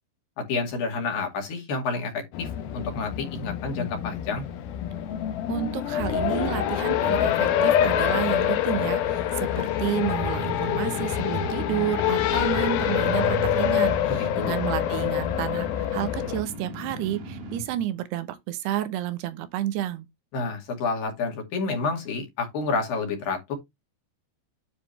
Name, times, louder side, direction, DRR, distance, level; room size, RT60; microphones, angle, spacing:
voice 1, 0.4-4.4 14.1-14.6 20.3-23.6, left 4 dB, 55° left, 3.7 m, -29 dB
Race car auto racing, 2.3-16.4, left 11 dB, 70° left, 2.4 m, -26 dB
voice 2, 5.5-20.1, right 12 dB, 75° right, 2.7 m, -30 dB
sound 1, 9.2-17.8, right 2 dB, 60° right, 3.7 m, -37 dB
10.0 x 5.0 x 3.2 m
omnidirectional pair, 5.3 m